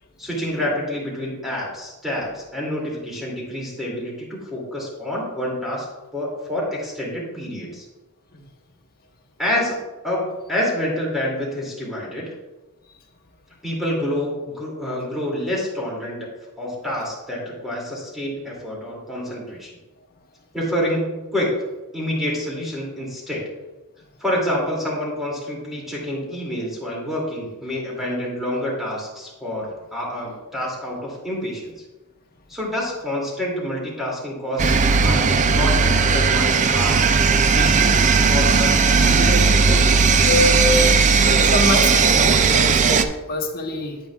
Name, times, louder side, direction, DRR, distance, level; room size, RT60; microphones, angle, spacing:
voice 1, 0.2-5.9 6.1-7.9 9.4-9.8 10.0-12.3 13.6-16.3 16.6-19.8 20.5-21.6 21.9-23.4 24.2-31.7 32.5-34.6 35.0-37.0 37.5-39.8, left 1 dB, ahead, -4 dB, 2.4 m, -27 dB
sound 1, 34.6-43.0, right 5 dB, 35° right, 0.4 m, -16 dB
voice 2, 40.2-44.0, left 2 dB, 45° left, 1 dB, 1.2 m, -25 dB
9.2 x 8.8 x 2.3 m, 1.1 s
head